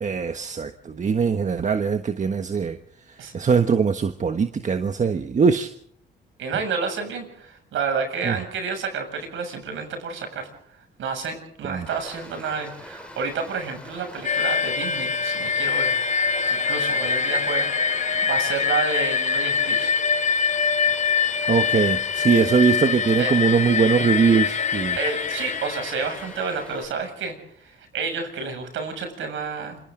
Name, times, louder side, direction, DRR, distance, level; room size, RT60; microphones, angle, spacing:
voice 1, 0.0-2.8 3.3-5.7 8.2-8.3 11.7-11.9 21.5-25.0, right 6 dB, 40° right, 7 dB, 1.4 m, -21 dB
voice 2, 6.4-10.5 11.0-19.9 23.2-23.4 25.0-27.3 27.6-29.8, right 5 dB, 80° right, 5 dB, 7.2 m, -30 dB
Stream, 11.9-26.9, left 1 dB, 5° left, 3.7 m, -43 dB
sound 1, 14.2-26.6, left 6 dB, 35° left, 1.1 m, -24 dB
28.5 x 26.5 x 3.9 m, 0.63 s
cardioid pair, 90°, 20 cm